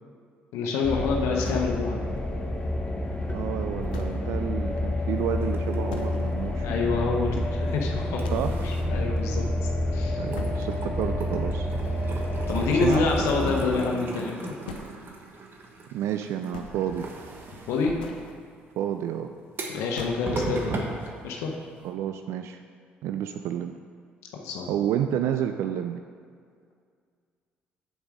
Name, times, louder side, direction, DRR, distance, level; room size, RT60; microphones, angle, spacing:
voice 1, 0.5-2.0 6.6-8.3 8.6-10.2 12.5-14.5 17.7-17.9 19.7-20.9 21.2-21.5 24.3-24.7, left 4 dB, 75° left, 0 dB, 1.0 m, -27 dB
sound 1, 0.8-13.8, left 1 dB, 20° left, 1.4 m, -29 dB
sound 2, 1.4-2.2 2.6-2.7 3.2-3.3 3.9-4.4 4.7-4.8 5.2-5.3 5.9-6.4 6.8-6.9 7.4-7.5 8.2-8.8 9.2-9.9 10.3-10.9 12.2-12.3 12.9-13.3 14.3-14.9 15.9-16.1 16.4-17.1 17.7-18.3 19.6-19.7 20.0-20.5, left 5 dB, 90° left, 0.6 m, -41 dB
voice 2, 3.3-6.7 8.3-8.5 10.2-11.7 12.7-13.1 15.9-17.1 18.8-19.3 21.8-22.6 23.0-23.8 24.7-26.0, right 10 dB, 70° right, 7 dB, 0.4 m, -30 dB
sound 3, 5.2-7.7 8.1-9.9 10.2-21.9, right 3 dB, 50° right, 1.3 m, -38 dB
7.2 x 6.9 x 4.9 m, 2.1 s
hypercardioid pair, 55°, 5 cm